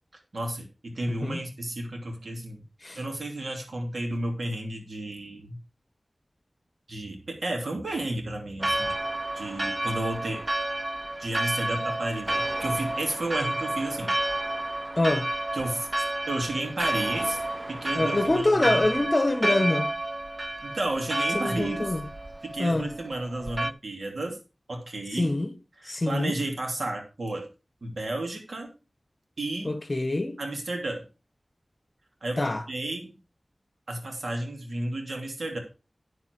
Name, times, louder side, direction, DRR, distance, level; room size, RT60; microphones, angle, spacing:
voice 1, 0.3-2.6 3.0-5.6 6.9-8.9 9.3-10.4 11.2-14.1 15.5-17.4 17.7-18.9 20.6-21.9 22.4-24.4 24.7-25.3 26.1-27.5 27.8-28.7 29.4-29.8 30.4-31.0 32.2-33.2 33.9-35.6, right 1 dB, 85° right, 2.8 m, -32 dB
Church bell, 8.6-23.7, right 1 dB, 35° right, 0.4 m, -30 dB
voice 2, 15.0-15.3 17.9-19.9 21.3-22.1 22.6-22.9 25.1-25.5 25.8-26.4 29.6-30.4 32.4-32.6, left 2 dB, 40° left, 1.5 m, -25 dB
9.7 x 7.3 x 4.6 m
wide cardioid pair, 70°, 0 cm